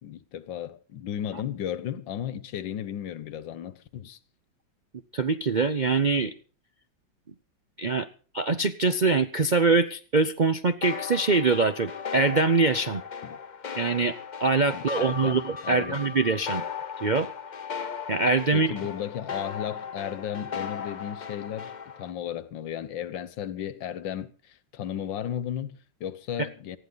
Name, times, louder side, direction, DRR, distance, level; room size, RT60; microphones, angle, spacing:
voice 1, 0.0-4.2 13.2-13.4 14.7-16.1 18.5-21.7 22.0-26.8, left 10 dB, 90° left, 1.7 m, -34 dB
voice 2, 5.1-6.3 7.8-8.1 8.3-13.0 13.8-16.6 17.0-17.3 18.1-18.7, right 3 dB, 60° right, 0.4 m, -24 dB
sound 1, 10.8-22.1, left 6 dB, 45° left, 0.6 m, -37 dB
19.5 x 15.0 x 4.0 m
omnidirectional pair, 2.0 m